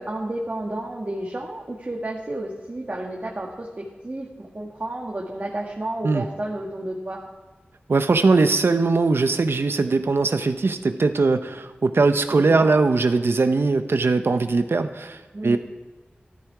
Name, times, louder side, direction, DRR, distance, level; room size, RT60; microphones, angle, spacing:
voice 1, 0.0-7.2 12.3-12.7 15.3-15.6, right 1 dB, 45° right, -3 dB, 1.9 m, -31 dB
voice 2, 7.9-15.6, right 3 dB, 85° right, 8 dB, 0.9 m, -20 dB
13.5 x 13.0 x 4.8 m, 1.2 s
wide cardioid pair, 60°, 4 cm